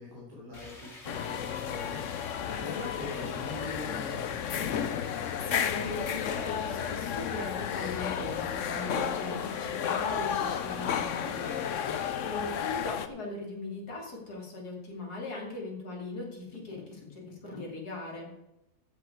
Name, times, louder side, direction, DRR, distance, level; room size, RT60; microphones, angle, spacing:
voice 1, 0.0-4.7 11.3-12.0, left 1 dB, 65° right, -6 dB, 4.1 m, -44 dB
sound 1, 0.5-12.1, left 2 dB, 45° left, 2.4 m, -50 dB
sound 2, 1.0-13.1, left 8 dB, 60° left, 1.0 m, -32 dB
voice 2, 5.5-18.3, left 3 dB, 80° left, -2 dB, 3.6 m, -39 dB
15.0 x 7.1 x 4.7 m, 0.91 s
omnidirectional pair, 1.6 m